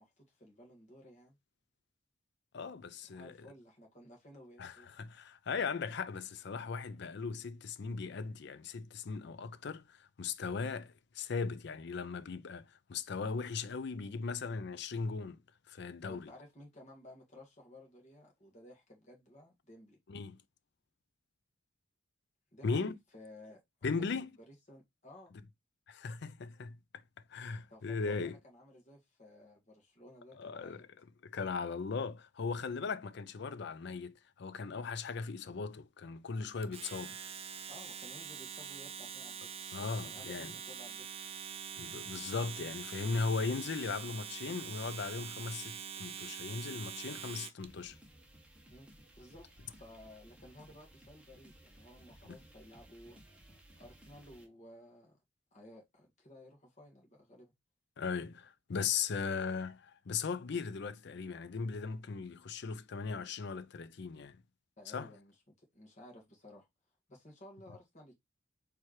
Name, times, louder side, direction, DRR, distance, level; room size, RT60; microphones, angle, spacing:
voice 1, 0.0-1.4 3.1-4.9 16.0-20.0 22.5-25.3 27.7-30.8 37.7-39.5 40.0-41.1 48.7-53.2 53.8-55.2 55.5-57.5 64.8-66.7 67.1-68.1, left 1 dB, 40° left, 1.7 m, -56 dB
voice 2, 2.5-3.3 4.6-15.4 15.7-16.3 20.1-20.4 22.6-22.9 23.8-24.3 25.9-26.8 27.3-28.4 30.4-30.9 31.2-37.1 39.7-40.5 41.8-48.0 58.0-64.4 64.9-65.1, left 5 dB, 60° left, 0.5 m, -38 dB
Domestic sounds home sounds, 36.6-47.7, right 8 dB, 30° right, 0.4 m, -44 dB
sound 1, 47.6-54.5, right 1 dB, 5° right, 1.0 m, -59 dB
4.6 x 3.4 x 3.0 m
head